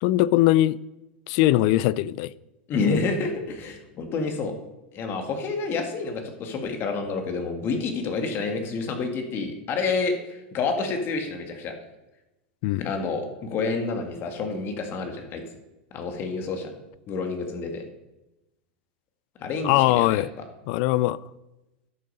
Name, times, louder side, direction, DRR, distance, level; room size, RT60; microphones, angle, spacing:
voice 1, 0.0-0.8 1.3-2.3 12.6-12.9 19.6-20.3 20.7-21.2, left 15 dB, 55° left, 0.4 m, -21 dB
voice 2, 2.7-4.5 4.9-11.7 12.8-15.4 15.9-16.7 17.1-17.8 19.4-20.2, left 4 dB, 40° left, 1.7 m, -28 dB
11.0 x 6.4 x 5.4 m
supercardioid pair, 125°, 6 cm